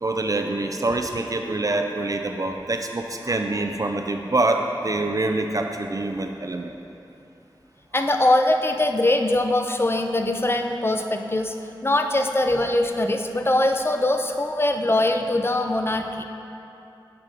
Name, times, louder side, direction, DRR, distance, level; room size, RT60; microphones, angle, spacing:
voice 1, 0.0-6.7, right 2 dB, 45° right, 4 dB, 0.3 m, -25 dB
voice 2, 7.9-11.5 11.8-16.2, left 1 dB, 30° left, 5 dB, 0.4 m, -22 dB
7.5 x 4.8 x 3.8 m, 2.8 s
wide cardioid pair, 65°, 9 cm